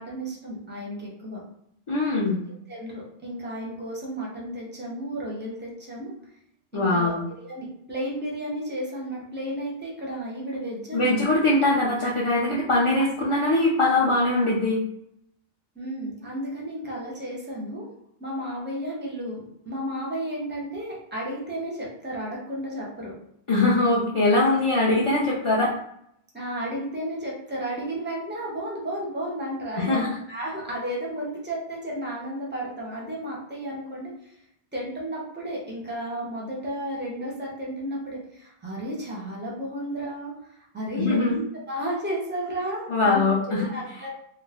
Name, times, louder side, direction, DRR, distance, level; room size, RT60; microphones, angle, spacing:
voice 1, 0.0-1.4 2.7-6.1 6.7-7.1 7.4-11.3 15.8-17.9 18.2-23.1 24.4-24.5 26.3-30.0 30.3-34.1 34.7-44.1, right 1 dB, 15° right, -3 dB, 0.6 m, -33 dB
voice 2, 1.9-2.4 6.7-7.2 10.9-14.8 23.5-25.8 29.8-30.1 41.0-41.4 42.9-43.7 44.0-44.1, left 2 dB, 50° left, -5 dB, 0.4 m, -22 dB
2.4 x 2.0 x 3.4 m, 0.74 s
omnidirectional pair, 1.1 m